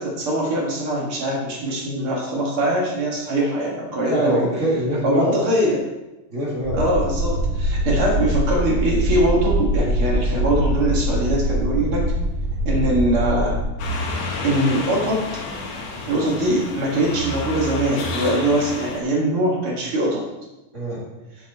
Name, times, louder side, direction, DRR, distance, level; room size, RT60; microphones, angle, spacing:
voice 1, 0.0-4.5 5.0-5.8 6.7-12.1 12.6-13.6 14.4-15.3 16.1-20.2, right 1 dB, 50° right, -3 dB, 1.8 m, -22 dB
voice 2, 4.1-5.4 6.3-6.9 20.7-21.0, right 1 dB, 25° right, -6 dB, 1.6 m, -23 dB
sound 1, 6.6-13.6, right 1 dB, 70° right, 2.8 m, -23 dB
sound 2, 13.8-19.0, left 2 dB, 70° left, 1.6 m, -30 dB
9.5 x 7.0 x 4.2 m, 1.0 s
omnidirectional pair, 4.9 m